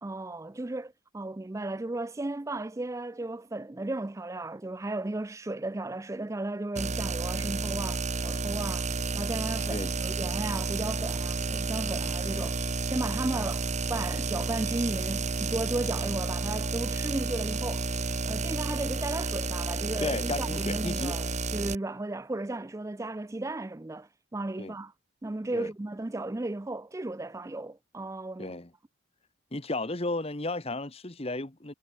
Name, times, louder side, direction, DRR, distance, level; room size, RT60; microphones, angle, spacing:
voice 1, 0.0-8.9 9.1-12.6 12.9-17.9 18.2-24.9 25.2-28.5, right 2 dB, 15° right, 0.4 m, -35 dB
sound 1, 6.8-21.8, right 3 dB, 35° right, 1.0 m, -31 dB
voice 2, 20.0-21.1 24.6-24.8 25.5-25.7 28.4-28.7 29.5-31.7, left 2 dB, 30° left, 1.3 m, -33 dB
head